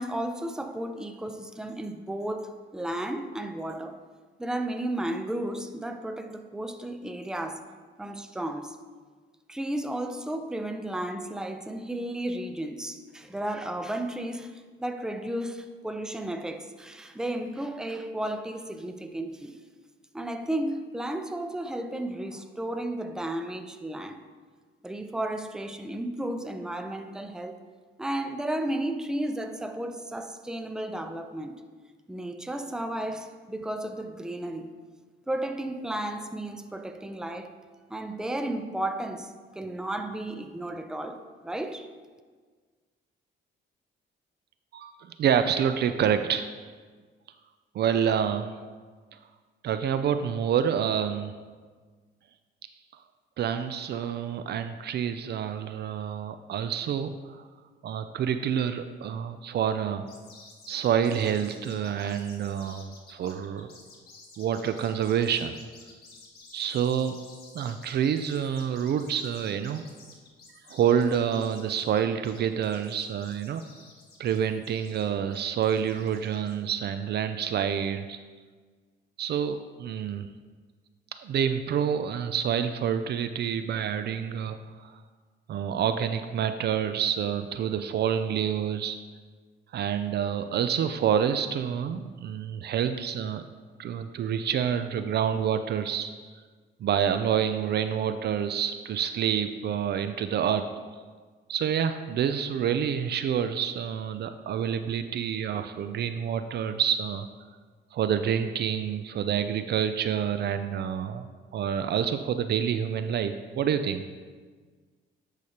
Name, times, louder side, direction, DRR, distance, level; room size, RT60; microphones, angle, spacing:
voice 1, 0.0-4.0 4.4-7.6 8.0-8.8 9.5-19.6 20.1-24.2 24.8-27.6 28.0-31.6 32.1-34.7 35.3-37.5 37.9-41.9, right 1 dB, 5° right, 0.5 m, -33 dB
voice 2, 44.7-46.5 47.7-48.5 49.1-49.2 49.6-51.3 53.4-57.5 57.8-60.1 60.7-63.7 64.4-65.6 66.5-67.2 67.5-69.8 70.7-73.6 74.2-78.2 79.2-80.3 81.2-84.9 85.5-89.0 89.7-93.4 93.8-96.1 96.8-100.7 101.5-107.3 107.9-114.0, right 8 dB, 55° right, 0.4 m, -28 dB
sound 1, 60.1-76.5, left 3 dB, 50° left, 1.7 m, -52 dB
10.5 x 4.9 x 2.9 m
cardioid pair, 90°, 20 cm